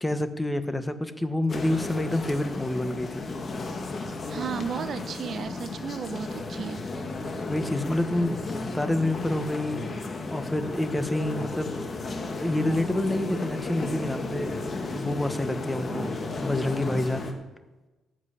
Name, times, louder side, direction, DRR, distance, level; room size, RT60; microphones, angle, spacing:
voice 1, 0.0-3.2 7.4-8.4 8.7-9.8 10.3-11.8 12.4-14.6 14.9-17.3, left 1 dB, 10° left, 10 dB, 1.1 m, -28 dB
sound 1, 1.5-17.3, left 3 dB, 40° left, 1.6 m, -34 dB
voice 2, 4.3-6.8 15.9-16.1, right 6 dB, 55° right, 11 dB, 0.8 m, -34 dB
13.5 x 7.6 x 8.5 m, 1.2 s
cardioid pair, 90°, 0 cm